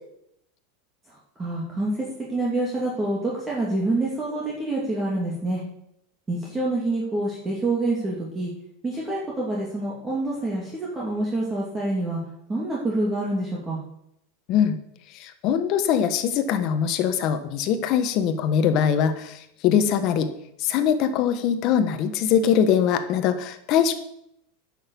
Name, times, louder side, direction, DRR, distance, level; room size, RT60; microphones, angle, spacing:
voice 1, 1.1-5.6 6.3-8.5 8.8-12.2 12.5-13.8, right 2 dB, 15° right, -5 dB, 2.7 m, -27 dB
voice 2, 15.2-20.3 20.6-23.9, left 8 dB, 45° left, 9 dB, 1.4 m, -22 dB
10.0 x 6.6 x 7.0 m, 0.77 s
supercardioid pair, 135°, 0 cm